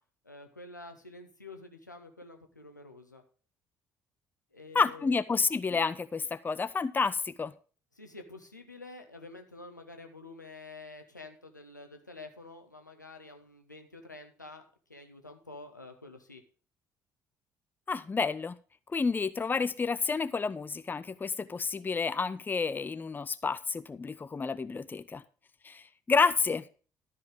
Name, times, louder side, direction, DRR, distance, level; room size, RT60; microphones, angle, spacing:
voice 1, 0.2-3.2 4.5-5.2 7.9-16.4, left 3 dB, 90° left, 5 dB, 0.9 m, -48 dB
voice 2, 4.7-7.5 17.9-18.5 18.9-25.2 25.6-26.7, left 4 dB, 20° left, 15 dB, 0.6 m, -30 dB
12.5 x 5.7 x 4.8 m, 0.38 s
figure-of-eight pair, 50°, 9 cm